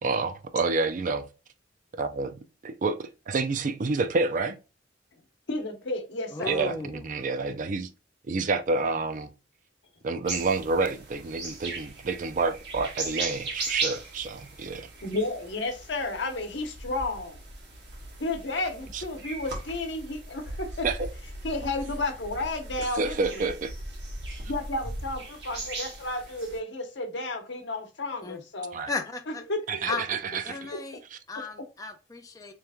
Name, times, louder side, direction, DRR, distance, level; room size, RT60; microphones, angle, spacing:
voice 1, 0.0-1.3 2.0-4.6 6.5-7.9 8.3-9.3 10.0-14.9 18.9-19.0 20.8-21.1 22.8-23.7 28.7-28.9 29.7-30.7 31.1-31.2, right 4 dB, 45° right, 0.4 m, -29 dB
voice 2, 5.5-6.6 15.0-17.4 18.2-20.9 21.4-23.4 24.5-28.8 29.5-29.6 30.7-30.8, left 2 dB, 70° left, 0.9 m, -32 dB
voice 3, 6.3-7.0 28.2-28.4 28.9-29.4 29.9-30.1 30.4-31.0 31.3-32.5, left 3 dB, 20° left, 0.5 m, -35 dB
sound 1, 10.2-26.6, right 2 dB, 65° right, 1.5 m, -38 dB
3.3 x 3.1 x 3.4 m
head